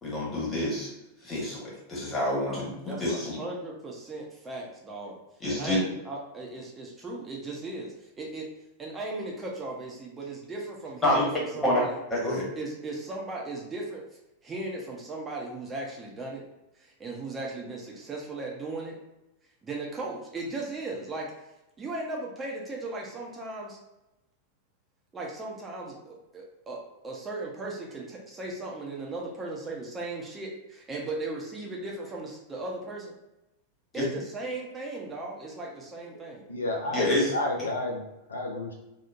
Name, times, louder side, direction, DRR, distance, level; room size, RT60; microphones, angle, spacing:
voice 1, 0.0-0.9 1.2-3.4 5.4-5.8 11.0-11.8 12.1-12.5 33.9-34.1 36.9-37.3, left 1 dB, 15° left, -5 dB, 1.1 m, -27 dB
voice 2, 2.5-5.2 5.5-8.4 8.8-11.3 11.6-12.0 12.6-14.0 14.4-16.4 16.7-19.0 19.6-21.3 21.8-23.8 25.1-26.8 27.0-33.1 33.9-36.4 36.8-37.4, right 2 dB, 20° right, -2 dB, 0.5 m, -37 dB
voice 3, 36.5-38.0 38.3-38.7, left 1 dB, 70° left, 0 dB, 0.4 m, -31 dB
3.0 x 2.0 x 2.4 m, 0.94 s
figure-of-eight pair, 90°, 0 cm